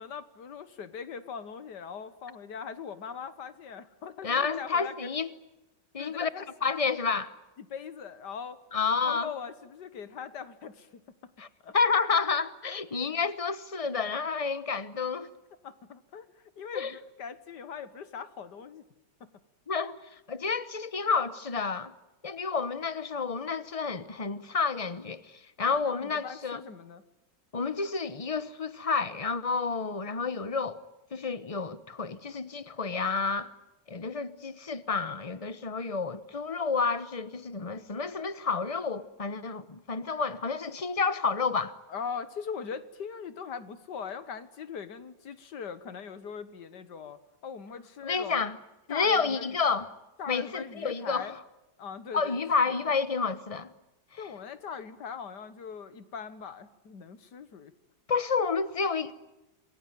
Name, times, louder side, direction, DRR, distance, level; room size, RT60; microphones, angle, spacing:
voice 1, 0.0-5.1 6.0-6.7 7.6-8.6 9.0-11.0 11.6-11.7 12.7-12.8 15.6-18.8 19.2-19.3 25.7-27.0 41.9-48.5 48.9-49.6 50.2-51.4 51.8-52.8 54.2-57.7, left 6 dB, 65° left, 1.9 m, -41 dB
voice 2, 4.2-5.3 5.9-6.3 6.6-7.3 8.7-9.3 11.4-11.5 11.7-15.3 16.7-16.9 19.7-20.0 20.3-21.9 22.2-25.3 25.6-26.6 27.5-30.8 31.1-33.5 33.9-41.7 48.0-48.6 48.9-49.9 50.3-51.3 52.1-53.7 58.1-59.1, left 5 dB, 25° left, 0.8 m, -30 dB
27.5 x 21.0 x 9.3 m
omnidirectional pair, 2.0 m